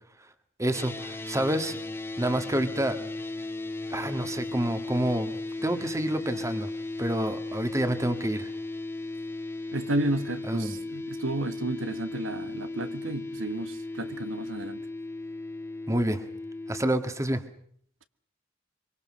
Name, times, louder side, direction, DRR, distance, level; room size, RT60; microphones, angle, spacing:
voice 1, 0.6-1.8 2.2-3.0 3.9-5.4 5.6-6.7 7.0-8.5 10.5-10.8 15.9-16.2 16.7-17.4, right 1 dB, 15° right, 1.8 m, -28 dB
sound 1, 0.7-16.8, left 2 dB, 15° left, 1.9 m, -36 dB
voice 2, 9.7-14.8, right 1 dB, 90° right, 1.5 m, -32 dB
24.5 x 24.0 x 6.3 m
head